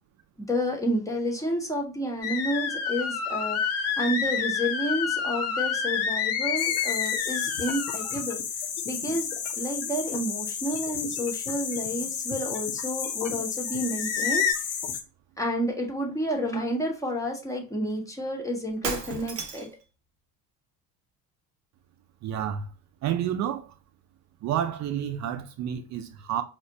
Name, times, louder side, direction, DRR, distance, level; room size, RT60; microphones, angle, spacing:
voice 1, 0.5-8.4 8.8-14.7 15.4-19.7, equal, 5° left, 0.8 m, -30 dB
sound 1, 2.2-8.2 13.8-14.5, left 7 dB, 35° left, 0.5 m, -28 dB
sound 2, 6.6-15.0, left 7 dB, 65° left, 0.8 m, -33 dB
Shatter, 18.7-19.8, right 5 dB, 85° right, 0.6 m, -33 dB
voice 2, 22.2-22.7 23.0-23.7 24.4-26.4, right 10 dB, 35° right, 0.6 m, -29 dB
5.0 x 2.1 x 2.7 m
figure-of-eight pair, 60°, 47 cm